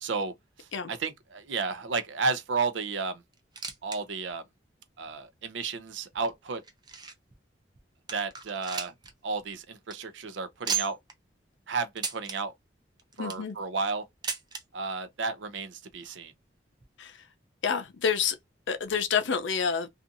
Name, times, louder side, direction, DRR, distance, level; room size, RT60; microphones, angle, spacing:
voice 1, 0.0-3.2 3.8-4.4 5.0-6.6 8.1-8.9 9.2-11.0 11.7-12.5 13.2-14.1 14.7-16.3, right 4 dB, 75° right, 0.5 m, -32 dB
sound 1, 3.3-4.0 4.3-4.4 5.0-5.1 5.9-7.3 7.8-7.9 8.1-9.1 9.4-9.5 9.8-9.9 10.6-11.1 12.0-12.4 13.0-13.5 14.2-14.6 15.6-15.7 15.9-16.0 16.8-16.9, right 6 dB, 25° right, 0.4 m, -35 dB
voice 2, 13.2-13.6 17.0-17.2 17.6-18.4 18.7-19.9, left 6 dB, 75° left, 0.5 m, -28 dB
2.6 x 2.4 x 2.4 m
head